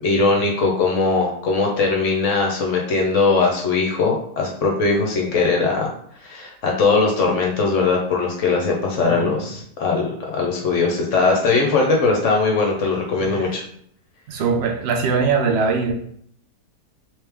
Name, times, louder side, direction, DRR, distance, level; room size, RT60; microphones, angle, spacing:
voice 1, 0.0-5.9 6.2-13.6, left 4 dB, 60° left, -1 dB, 0.8 m, -20 dB
voice 2, 9.0-9.5 13.2-13.5 14.3-15.9, right 5 dB, 70° right, 3 dB, 0.6 m, -22 dB
3.2 x 3.0 x 3.3 m, 0.65 s
omnidirectional pair, 1.8 m